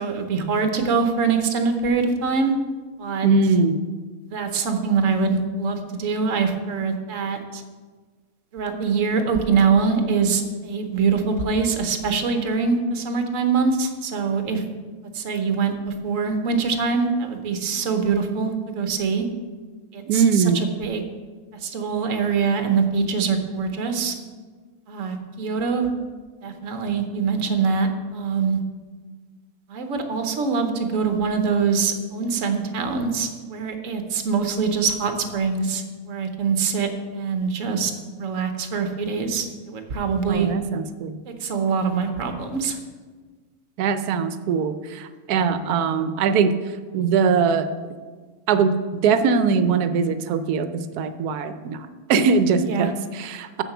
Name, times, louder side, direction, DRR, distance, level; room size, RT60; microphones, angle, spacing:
voice 1, 0.0-2.5 3.0-3.3 4.3-7.6 8.5-14.6 15.1-19.3 19.9-21.1 21.6-24.1 24.9-25.9 26.4-28.6 29.7-37.9 38.2-40.5 41.3-42.8 52.7-52.9, right 5 dB, 60° right, 6 dB, 1.3 m, -24 dB
voice 2, 3.2-3.8 20.1-20.6 40.3-41.2 43.8-46.5 46.9-47.7 48.5-53.6, right 5 dB, 85° right, 11 dB, 1.2 m, -21 dB
7.3 x 6.9 x 6.0 m, 1.4 s
omnidirectional pair, 1.6 m